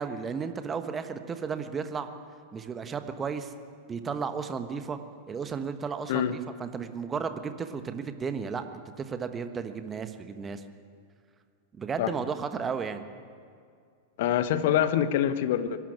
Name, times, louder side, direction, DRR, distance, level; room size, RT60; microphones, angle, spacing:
voice 1, 0.0-2.1 2.5-3.5 3.9-5.0 5.3-8.6 9.0-10.6 11.8-13.1, right 6 dB, 20° right, 9 dB, 1.3 m, -34 dB
voice 2, 14.2-15.8, left 10 dB, 55° left, 13 dB, 1.0 m, -25 dB
23.0 x 12.5 x 9.6 m, 2.3 s
figure-of-eight pair, 90°, 0 cm